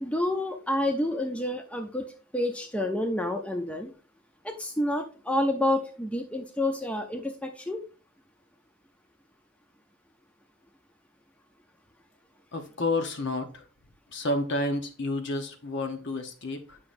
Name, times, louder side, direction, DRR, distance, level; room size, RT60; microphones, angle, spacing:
voice 1, 0.0-2.0 2.3-3.9 4.4-7.8, left 1 dB, 5° left, 3 dB, 0.6 m, -29 dB
voice 2, 12.5-13.6 14.1-16.8, left 2 dB, 55° left, 6 dB, 1.0 m, -30 dB
8.6 x 5.8 x 2.6 m, 0.37 s
head